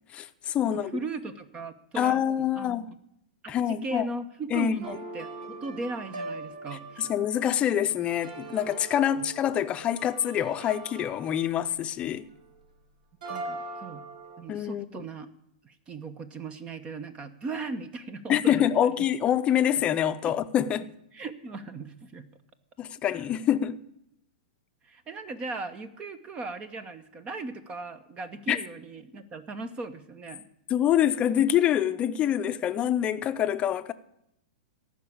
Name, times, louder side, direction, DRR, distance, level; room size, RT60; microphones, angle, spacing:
voice 1, 0.1-1.0 2.0-2.9 3.5-4.1 4.5-4.8 7.0-12.3 14.5-15.0 18.3-20.9 22.8-23.8 28.5-28.6 30.7-33.9, left 10 dB, 25° left, 0.7 m, -26 dB
voice 2, 0.7-2.9 3.4-7.1 9.2-9.3 13.3-14.0 14.4-15.3 15.6-18.9 20.2-20.3 21.1-22.3 24.8-30.5, right 3 dB, 25° right, 0.9 m, -38 dB
sound 1, 4.8-12.6 13.2-14.4, right 3 dB, 80° right, 2.6 m, -41 dB
14.5 x 6.0 x 8.6 m
hypercardioid pair, 125°, 4 cm